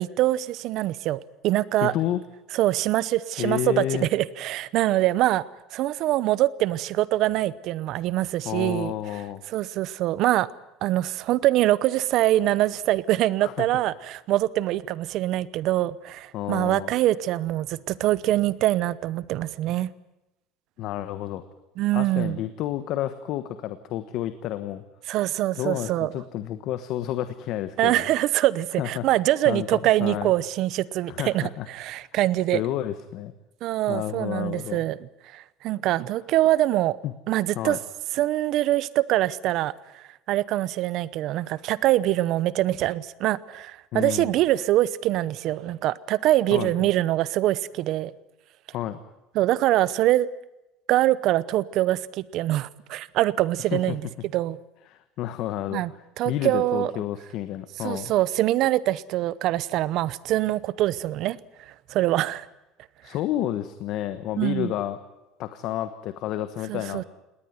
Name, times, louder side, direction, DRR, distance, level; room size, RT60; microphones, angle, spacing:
voice 1, 0.0-1.9 2.5-5.4 5.7-8.9 9.5-10.5 10.8-19.9 21.8-22.4 25.1-26.1 27.8-32.6 33.6-37.0 37.3-37.8 38.1-48.1 49.3-50.3 50.9-54.0 54.3-54.6 55.7-55.9 56.2-56.9 57.8-62.5 64.4-64.7 66.7-67.0, right 15 dB, 50° right, 19 dB, 0.8 m, -24 dB
voice 2, 1.8-2.2 3.4-4.1 8.4-9.4 13.4-13.5 16.3-16.9 20.8-21.4 21.9-24.8 25.5-28.0 28.8-29.1 29.4-30.3 31.1-31.7 32.5-33.3 33.9-34.8 37.0-37.1 37.5-37.8 43.9-44.4 46.5-46.9 48.7-49.0 53.7-54.0 54.9-55.8 56.2-58.1 63.0-65.0 65.4-67.0, left 12 dB, 55° left, 11 dB, 1.2 m, -30 dB
20.0 x 18.5 x 9.4 m, 0.97 s
cardioid pair, 150°, 0 cm